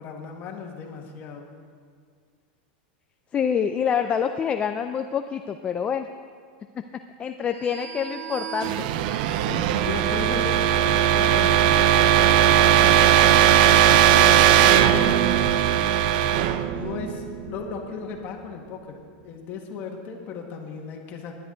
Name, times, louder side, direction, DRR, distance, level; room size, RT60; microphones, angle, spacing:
voice 1, 0.0-1.6 9.3-12.2 12.5-16.0 16.7-21.3, left 5 dB, 35° left, 1 dB, 1.9 m, -36 dB
voice 2, 3.3-6.1 6.7-8.9, left 7 dB, 20° left, 6 dB, 0.4 m, -27 dB
sound 1, 7.9-17.7, right 10 dB, 60° right, 0.5 m, -19 dB
18.0 x 10.5 x 4.0 m, 2.1 s
supercardioid pair, 150°, 5 cm